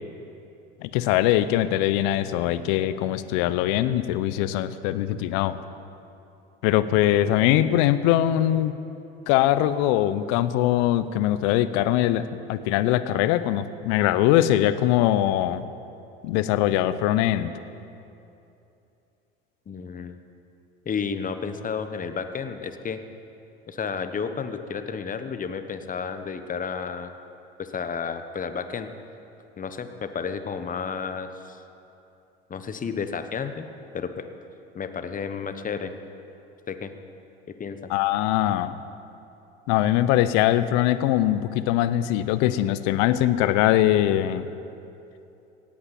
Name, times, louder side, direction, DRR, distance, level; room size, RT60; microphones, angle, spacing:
voice 1, 0.8-5.6 6.6-8.7 9.3-15.7 16.2-17.5 37.9-38.7 39.7-44.4, left 13 dB, 65° left, 14 dB, 0.8 m, -22 dB
voice 2, 19.7-20.2 20.8-23.0 23.7-27.1 27.6-28.9 29.6-31.6 32.5-33.7 33.9-34.3 34.7-35.9 36.7-36.9 37.5-37.8, left 6 dB, 25° left, 9 dB, 1.2 m, -32 dB
17.5 x 8.8 x 7.2 m, 2.8 s
hypercardioid pair, 80°, 30 cm